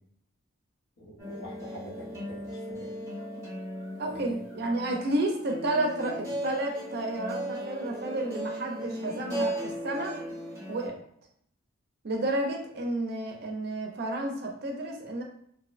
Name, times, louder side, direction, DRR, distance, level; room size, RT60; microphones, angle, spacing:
voice 1, 1.0-2.9 4.1-4.4, equal, 85° left, -4 dB, 0.8 m, -45 dB
sound 1, 1.2-10.9, right 1 dB, 15° right, 0.7 m, -37 dB
voice 2, 4.0-10.2 10.7-11.0 12.0-15.2, right 1 dB, 50° right, 1 dB, 0.4 m, -31 dB
2.6 x 2.0 x 2.4 m, 0.68 s
head